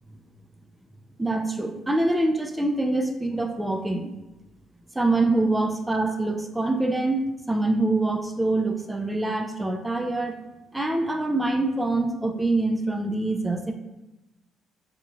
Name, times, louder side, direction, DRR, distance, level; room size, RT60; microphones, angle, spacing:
voice 1, 1.2-4.1 4.9-10.4 10.7-13.7, right 2 dB, 15° right, 4 dB, 0.4 m, -25 dB
3.6 x 2.9 x 2.3 m, 0.99 s
hypercardioid pair, 55°, 0 cm